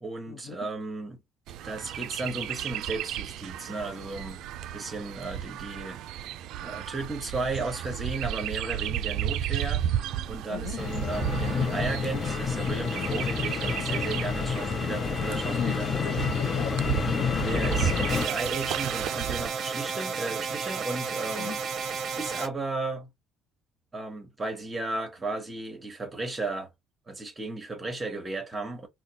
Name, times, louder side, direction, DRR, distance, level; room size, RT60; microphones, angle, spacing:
voice 1, 0.0-1.2 1.6-4.4 4.7-6.0 6.6-9.8 10.3-15.9 17.4-21.6 22.2-23.1 23.9-26.7 27.1-28.9, right 3 dB, 15° right, 1.2 m, -34 dB
Chirp tweet, 1.5-19.5, right 11 dB, 65° right, 0.3 m, -34 dB
voice 2, 10.5-10.8 15.5-17.5 21.4-21.5, left 9 dB, 70° left, 0.8 m, -39 dB
sound 1, 10.8-18.3, left 5 dB, 25° left, 0.5 m, -29 dB
sound 2, 18.1-22.5, right 6 dB, 40° right, 0.7 m, -32 dB
3.8 x 2.1 x 2.9 m
cardioid pair, 160°, 0 cm